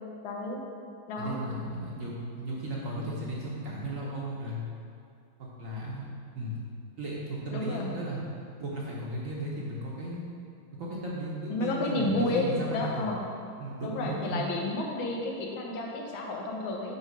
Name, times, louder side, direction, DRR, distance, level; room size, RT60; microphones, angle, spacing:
voice 1, 0.2-0.6 1.1-1.5 7.5-7.9 11.5-13.2 13.8-17.0, left 2 dB, 90° left, -1 dB, 1.8 m, -31 dB
voice 2, 1.2-4.6 5.4-6.1 6.3-6.6 7.0-8.2 8.6-10.2 10.8-12.9 13.6-14.4, right 1 dB, 50° right, -5 dB, 1.1 m, -35 dB
6.9 x 4.0 x 5.2 m, 2.4 s
omnidirectional pair, 2.1 m